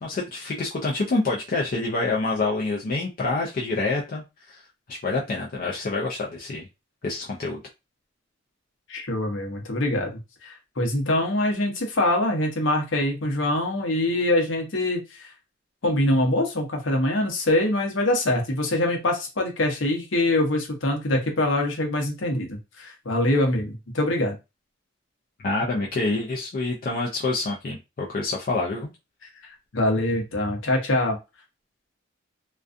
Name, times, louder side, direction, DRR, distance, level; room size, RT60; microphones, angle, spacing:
voice 1, 0.0-4.6 4.9-6.7 7.0-7.6 25.4-28.9, left 3 dB, 45° left, -2 dB, 0.4 m, -27 dB
voice 2, 8.9-15.3 15.8-24.3 29.7-31.2, left 1 dB, 70° left, 2 dB, 0.8 m, -24 dB
2.4 x 2.3 x 2.5 m, 0.26 s
head